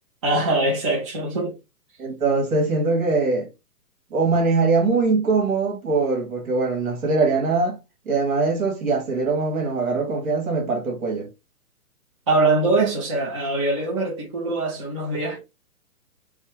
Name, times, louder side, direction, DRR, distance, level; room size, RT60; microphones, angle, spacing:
voice 1, 0.2-1.5 12.3-15.4, right 2 dB, 20° right, 0.6 m, -22 dB
voice 2, 2.0-3.5 4.1-7.8 8.1-11.3, right 3 dB, 60° right, 1.8 m, -22 dB
3.4 x 2.1 x 3.0 m
hypercardioid pair, 155°, 46 cm